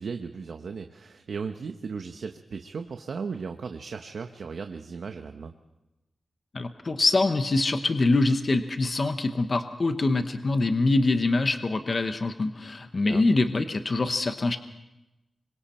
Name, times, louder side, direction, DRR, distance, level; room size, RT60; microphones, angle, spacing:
voice 1, 0.0-5.5 13.0-13.3, right 5 dB, 70° right, 6 dB, 1.0 m, -36 dB
voice 2, 6.5-14.6, left 2 dB, 35° left, 8 dB, 1.0 m, -24 dB
26.5 x 23.0 x 4.4 m, 0.98 s
wide cardioid pair, 165°, 0 cm